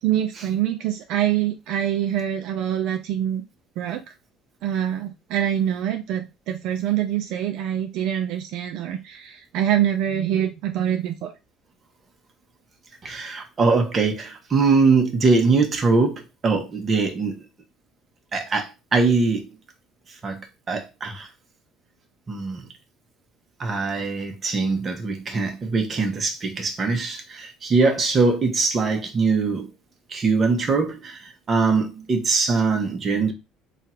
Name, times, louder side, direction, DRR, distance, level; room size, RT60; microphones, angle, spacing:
voice 1, 0.0-3.4 3.8-4.0 4.6-11.3, right 10 dB, 70° right, 0.5 m, -25 dB
voice 2, 13.0-17.4 18.3-19.5 20.2-21.3 22.3-22.7 23.6-29.7 30.1-33.3, right 4 dB, 30° right, 1.0 m, -22 dB
3.6 x 2.4 x 4.3 m
cardioid pair, 125°, 0 cm